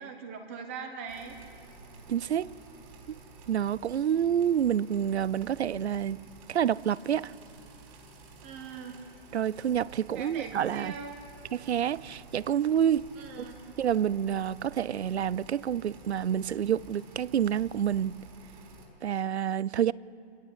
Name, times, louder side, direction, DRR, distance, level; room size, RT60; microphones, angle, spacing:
voice 1, 0.0-1.4 8.4-9.0 10.1-11.2 13.2-13.5, right 5 dB, 10° right, 0.8 m, -41 dB
sound 1, 1.1-18.9, right 3 dB, 30° right, 4.3 m, -51 dB
voice 2, 2.1-2.5 3.1-3.2 3.5-6.2 6.5-7.3 9.3-10.9 11.5-13.1 13.8-18.2 19.0-19.9, right 9 dB, 80° right, 0.7 m, -28 dB
25.0 x 16.5 x 8.3 m
hypercardioid pair, 170°, 33 cm